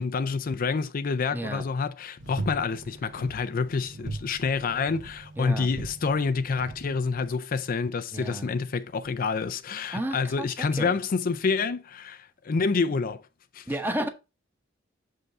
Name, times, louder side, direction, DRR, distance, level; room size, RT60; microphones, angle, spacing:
voice 1, 0.0-13.2 13.5-13.7, left 4 dB, 50° left, 0.4 m, -28 dB
voice 2, 1.3-1.7 5.4-5.7 8.1-8.6 9.9-11.0 13.7-14.1, right 1 dB, 10° right, 1.0 m, -32 dB
sound 1, 2.2-7.3, right 2 dB, 70° right, 1.1 m, -40 dB
6.7 x 5.4 x 3.5 m
head